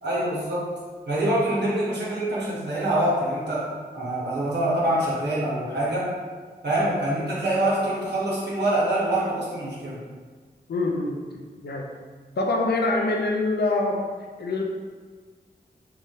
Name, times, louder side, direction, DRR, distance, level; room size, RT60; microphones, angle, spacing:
voice 1, 0.0-0.7 1.1-3.7 3.9-6.1 6.6-10.0, right 1 dB, 85° right, -7 dB, 1.0 m, -25 dB
voice 2, 10.7-11.2 11.6-11.9 12.4-14.1 14.4-14.6, left 2 dB, 75° left, 1 dB, 0.5 m, -25 dB
3.4 x 2.2 x 2.7 m, 1.5 s
wide cardioid pair, 65°, 17 cm